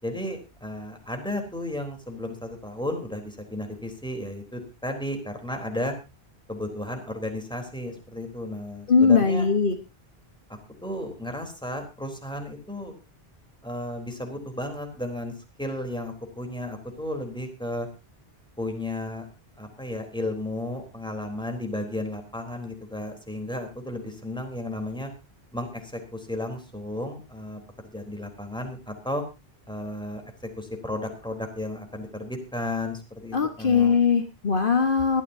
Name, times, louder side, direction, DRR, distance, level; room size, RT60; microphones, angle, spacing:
voice 1, 0.0-5.9 6.5-9.5 10.8-12.9 13.6-15.3 15.6-17.9 18.6-19.3 19.6-25.1 25.5-29.2 29.7-30.2 30.6-34.0, left 1 dB, 5° left, 4 dB, 3.6 m, -33 dB
voice 2, 8.9-9.7 33.3-35.2, left 5 dB, 60° left, 7 dB, 1.6 m, -20 dB
21.0 x 13.5 x 2.8 m, 0.28 s
omnidirectional pair, 1.0 m